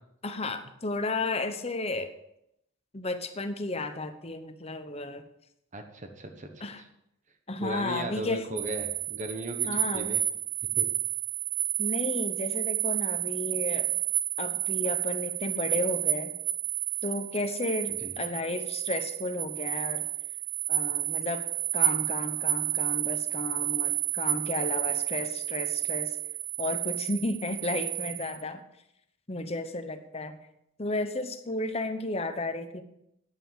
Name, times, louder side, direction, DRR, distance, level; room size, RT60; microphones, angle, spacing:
voice 1, 0.2-2.1 2.9-5.2 6.6-6.8 7.5-8.5 9.7-10.2 11.8-13.9 14.4-16.3 17.0-20.1 20.7-21.4 21.7-26.2 26.6-28.6 29.3-30.4 30.8-32.8, left 2 dB, 30° left, 8 dB, 0.9 m, -33 dB
voice 2, 5.7-6.7 7.6-10.2 10.7-10.9 17.9-18.1, right 1 dB, 35° right, 6 dB, 1.2 m, -37 dB
sound 1, 8.6-28.4, right 14 dB, 60° right, 0.6 m, -31 dB
9.3 x 9.1 x 7.3 m, 0.80 s
head